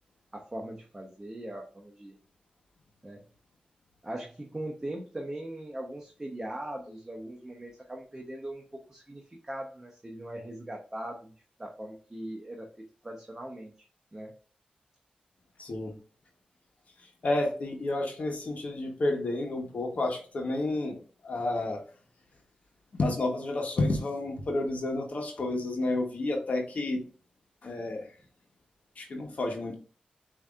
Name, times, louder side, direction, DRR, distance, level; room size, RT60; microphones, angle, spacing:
voice 1, 0.3-2.2 3.0-3.2 4.0-11.3 11.6-12.7 13.0-13.7 14.1-14.3, right 1 dB, 20° right, 0 dB, 0.9 m, -40 dB
voice 2, 15.6-15.9 17.2-21.0 21.2-21.8 22.9-27.0 27.6-28.1 29.0-29.7, left 2 dB, 60° left, 2 dB, 1.2 m, -30 dB
6.8 x 2.8 x 2.4 m, 0.38 s
cardioid pair, 70°, 3 cm